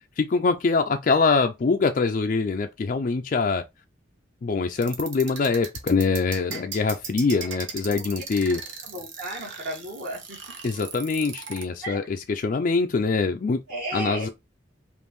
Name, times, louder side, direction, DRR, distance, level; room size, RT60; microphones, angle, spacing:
voice 1, 0.2-3.6 4.4-8.6 10.6-13.6 13.9-14.3, left 4 dB, 45° left, 0.3 m, -24 dB
sound 1, 4.8-11.6, right 5 dB, 80° right, 1.2 m, -37 dB
voice 2, 8.8-10.4 11.8-12.0 13.7-14.3, right 1 dB, 45° right, 1.8 m, -33 dB
5.1 x 2.5 x 3.0 m
head